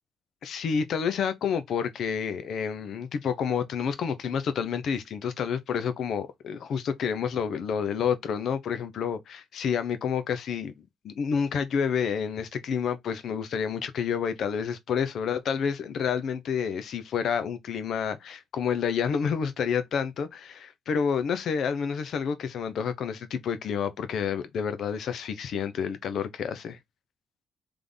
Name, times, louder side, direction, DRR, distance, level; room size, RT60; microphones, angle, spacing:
voice 1, 0.4-10.7 11.0-26.8, left 7 dB, 65° left, 0.9 m, -29 dB
3.5 x 3.5 x 3.9 m
cardioid pair, 90°, 0 cm